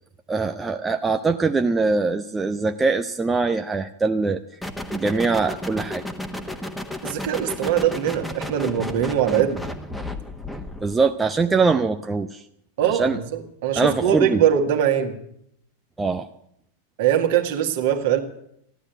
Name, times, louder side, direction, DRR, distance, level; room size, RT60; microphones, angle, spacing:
voice 1, 0.3-4.4 4.9-6.0 10.8-12.4 12.8-13.2 13.8-14.4 16.0-16.3, right 4 dB, 15° right, 7 dB, 0.6 m, -22 dB
sound 1, 4.6-11.0, left 1 dB, 5° left, 1.4 m, -33 dB
voice 2, 7.0-9.6 12.8-15.2 17.0-18.2, right 9 dB, 50° right, 5 dB, 1.8 m, -22 dB
15.0 x 11.5 x 8.0 m, 0.73 s
figure-of-eight pair, 90°, 0 cm